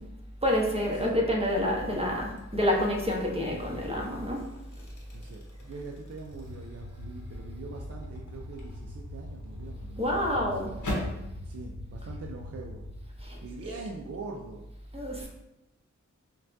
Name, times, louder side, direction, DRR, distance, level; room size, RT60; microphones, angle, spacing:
voice 1, 0.4-4.5 10.0-10.7 13.2-13.4 13.7-13.8 14.9-15.3, left 1 dB, 20° right, -2 dB, 1.0 m, -28 dB
sound 1, 2.4-2.7 3.3-11.3, left 1 dB, 80° left, 0.9 m, -42 dB
voice 2, 5.1-10.9 11.5-12.9 13.2-14.6, right 3 dB, 50° right, 0 dB, 0.4 m, -43 dB
sound 2, 6.2-13.0, left 1 dB, 30° left, 0.9 m, -43 dB
5.8 x 2.3 x 2.6 m, 0.91 s
wide cardioid pair, 55°, 31 cm